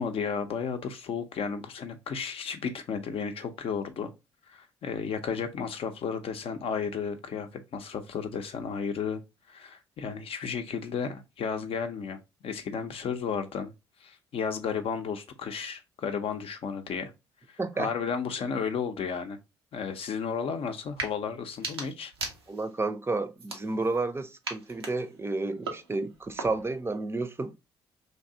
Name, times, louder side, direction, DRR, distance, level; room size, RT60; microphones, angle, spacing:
voice 1, 0.0-4.1 4.4-17.1 17.5-19.4 19.7-22.1, left 6 dB, 50° left, 0.6 m, -33 dB
voice 2, 17.6-17.9 22.5-27.5, right 3 dB, 20° right, 0.5 m, -31 dB
sound 1, 20.8-21.1 21.5-22.8 23.4-24.0 24.4-26.8, right 3 dB, 90° right, 0.5 m, -39 dB
3.3 x 2.6 x 2.6 m
figure-of-eight pair, 45°, 13 cm